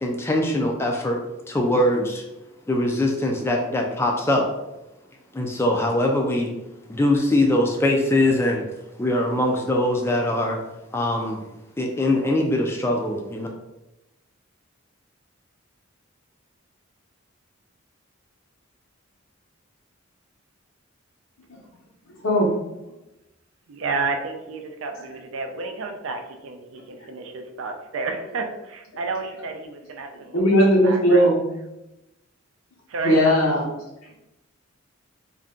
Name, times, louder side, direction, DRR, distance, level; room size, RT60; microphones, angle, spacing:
voice 1, 0.0-1.2 1.5-2.2 2.7-4.4 5.3-6.5 6.9-8.6 9.0-10.6 10.9-11.4 11.8-13.5, left 1 dB, 10° left, 1 dB, 0.3 m, -22 dB
voice 2, 22.2-22.6 30.3-31.5 33.0-33.7, equal, 85° left, -2 dB, 0.9 m, -18 dB
voice 3, 23.7-31.3 32.9-33.2, right 3 dB, 70° right, 5 dB, 0.4 m, -31 dB
2.6 x 2.2 x 3.6 m, 0.95 s
head